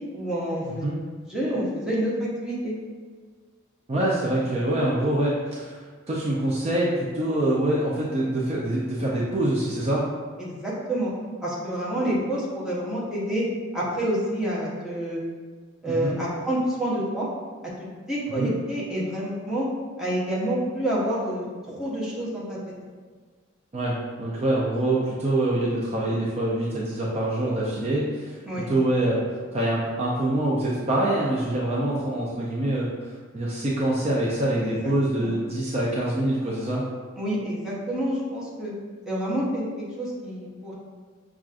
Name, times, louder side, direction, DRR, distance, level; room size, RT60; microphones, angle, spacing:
voice 1, 0.1-0.8 1.3-2.7 10.4-11.1 11.4-13.4 13.7-15.2 15.8-17.3 17.8-19.7 20.0-22.6 28.5-28.7 34.8-35.3 37.2-38.7 39.1-40.7, right 1 dB, 5° right, -8 dB, 0.8 m, -28 dB
voice 2, 3.9-10.1 15.9-16.2 18.3-18.5 23.7-28.4 28.7-36.8, right 1 dB, 30° right, -5 dB, 0.4 m, -25 dB
5.9 x 2.4 x 2.4 m, 1.5 s
head